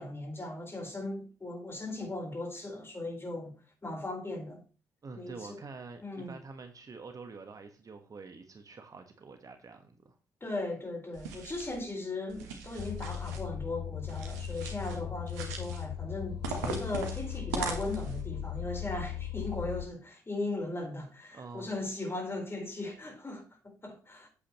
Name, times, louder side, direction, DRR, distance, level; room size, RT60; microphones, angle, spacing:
voice 1, 0.0-3.6 3.8-4.6 5.1-5.6 6.0-6.4 10.4-24.3, left 2 dB, 25° left, 4.0 m, -38 dB
voice 2, 5.0-10.1 21.3-21.7, right 4 dB, 40° right, 1.4 m, -47 dB
sound 1, 11.1-11.8 12.3-13.4 14.1-15.0 15.3-15.9 16.4-18.2, right 5 dB, 80° right, 1.3 m, -40 dB
sound 2, 12.8-19.9, left 11 dB, 50° left, 0.9 m, -38 dB
8.4 x 8.3 x 3.0 m
hypercardioid pair, 40°, 9 cm